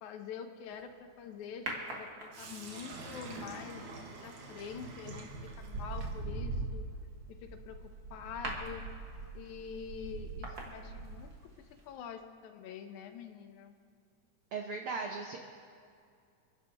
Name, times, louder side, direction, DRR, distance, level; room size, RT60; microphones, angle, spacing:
voice 1, 0.0-3.8 4.2-6.9 7.3-8.8 9.4-13.8, left 7 dB, 75° left, 7 dB, 2.1 m, -46 dB
sound 1, 1.7-2.7 4.6-4.8 5.3-11.5 11.8-11.9, right 3 dB, 40° right, 1.6 m, -41 dB
Sink (filling or washing), 2.3-10.2, right 3 dB, 65° right, 2.8 m, -49 dB
voice 2, 14.5-15.4, right 4 dB, 85° right, 2 dB, 1.2 m, -37 dB
29.5 x 10.5 x 2.9 m, 2.3 s
omnidirectional pair, 3.6 m